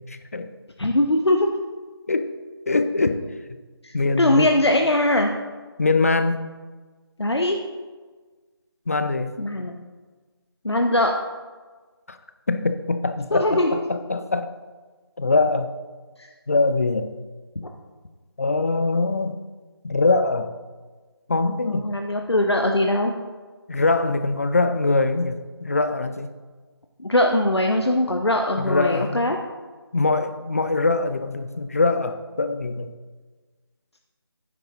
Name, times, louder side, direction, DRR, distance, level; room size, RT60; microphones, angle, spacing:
voice 1, 0.1-0.5 2.1-2.3 2.7-3.2 3.9-4.5 5.8-6.5 8.9-9.3 12.1-12.2 12.5-14.5 15.2-15.7 16.5-17.1 18.4-19.4 19.8-20.5 21.3-21.9 23.7-26.3 28.6-29.3 29.9-32.9, left 3 dB, 35° left, 10 dB, 0.5 m, -23 dB
voice 2, 0.8-1.5 3.8-5.3 7.2-7.6 9.4-9.8 10.6-11.1 13.3-13.8 21.7-23.1 27.0-29.4, left 1 dB, 85° left, 3 dB, 0.9 m, -21 dB
11.5 x 9.9 x 2.9 m, 1.4 s
figure-of-eight pair, 160°, 13 cm